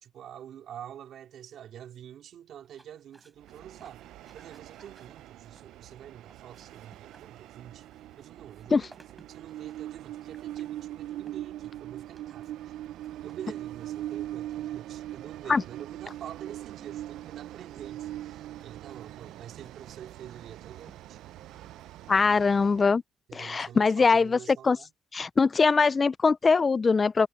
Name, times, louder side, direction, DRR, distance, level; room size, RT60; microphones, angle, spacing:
voice 1, 0.0-4.1 4.3-7.9 8.2-12.8 13.2-21.2 23.3-24.9, right 10 dB, 70° right, 2.5 m, -47 dB
sound 1, 2.6-22.5, right 2 dB, 20° right, 4.5 m, -62 dB
Train, 3.4-22.9, right 13 dB, 85° right, 0.4 m, -41 dB
voice 2, 22.1-23.0 23.3-24.8 25.1-27.3, left 4 dB, 35° left, 0.3 m, -22 dB
cardioid pair, 90°, 0 cm